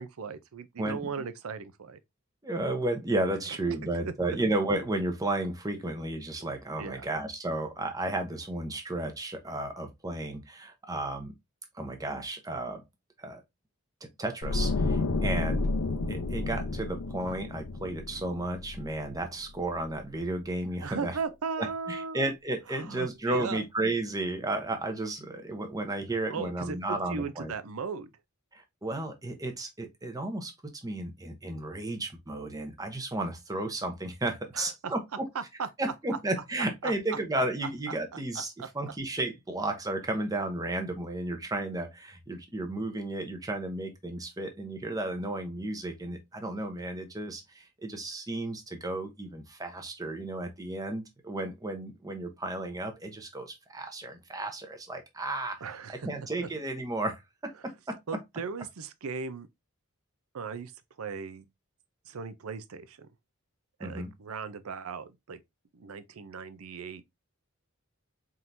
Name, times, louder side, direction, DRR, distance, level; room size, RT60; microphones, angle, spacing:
voice 1, 0.0-2.0 4.0-4.1 6.8-7.1 20.8-22.3 22.7-23.6 26.3-26.8 27.1-28.1 34.5-34.9 35.3-35.7 36.8-36.9 38.6-38.7 55.6-56.1 58.1-59.5 60.3-60.7 61.0-61.4 62.1-63.1 63.8-65.4 65.7-67.0, right 5 dB, 75° right, 0.5 m, -37 dB
voice 2, 0.8-1.1 2.4-11.3 11.7-12.8 13.2-13.4 14.2-15.7 16.1-21.2 21.6-27.5 28.5-30.5 30.8-35.2 35.8-55.6 56.0-57.2 57.6-58.0 63.8-64.1, right 2 dB, 15° right, 0.8 m, -33 dB
sound 1, 14.4-19.5 19.8-20.0, left 3 dB, 85° left, 0.6 m, -31 dB
4.4 x 3.8 x 2.6 m
head